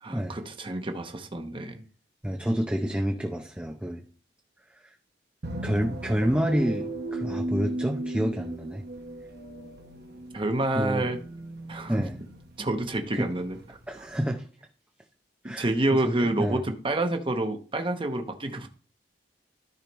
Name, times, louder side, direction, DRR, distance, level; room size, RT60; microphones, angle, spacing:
voice 1, 0.0-1.8 10.3-11.2 11.7-12.1 12.6-13.6 15.4-18.7, right 2 dB, 30° right, 5 dB, 1.0 m, -28 dB
voice 2, 2.2-4.0 5.6-8.8 10.7-11.1 11.9-12.2 13.1-13.3 13.9-14.4 15.4-16.6, equal, 5° right, 2 dB, 0.6 m, -28 dB
sound 1, 5.4-14.2, right 1 dB, 65° right, 1.2 m, -37 dB
13.5 x 5.0 x 3.1 m, 0.40 s
head